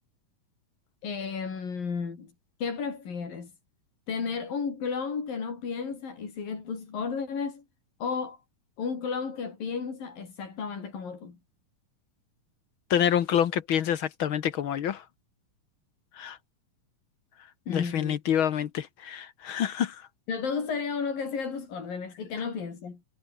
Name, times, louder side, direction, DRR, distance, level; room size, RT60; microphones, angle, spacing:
voice 1, 1.0-2.3 2.6-3.5 4.1-7.6 8.0-8.4 8.8-11.4 17.7-18.2 20.3-23.0, left 5 dB, 90° left, 6.6 m, -33 dB
voice 2, 12.9-15.0 16.2-16.4 17.7-20.0, left 9 dB, 70° left, 1.2 m, -27 dB
omnidirectional pair, 3.9 m